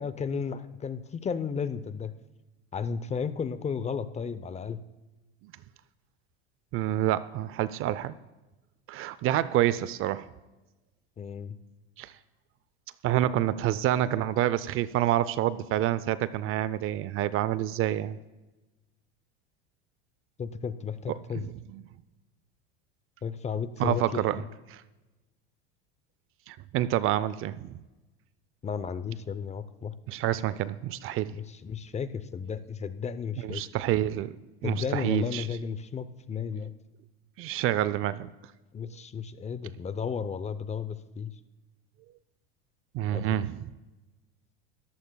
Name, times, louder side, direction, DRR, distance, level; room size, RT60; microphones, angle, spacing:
voice 1, 0.0-2.1 2.7-4.8 11.2-11.6 20.4-21.5 23.2-24.4 28.6-29.9 31.3-33.6 34.6-36.7 38.7-41.3 43.1-43.4, left 6 dB, 20° left, 13 dB, 0.7 m, -34 dB
voice 2, 6.7-8.1 8.9-10.3 12.0-12.1 13.0-18.2 21.3-21.8 23.8-24.4 24.7-24.8 26.5-27.7 30.1-31.3 33.4-34.4 34.6-35.5 37.4-38.3 42.9-43.6, right 13 dB, 45° right, 17 dB, 0.5 m, -28 dB
20.5 x 14.0 x 2.3 m, 1.1 s
supercardioid pair, 100°, 31 cm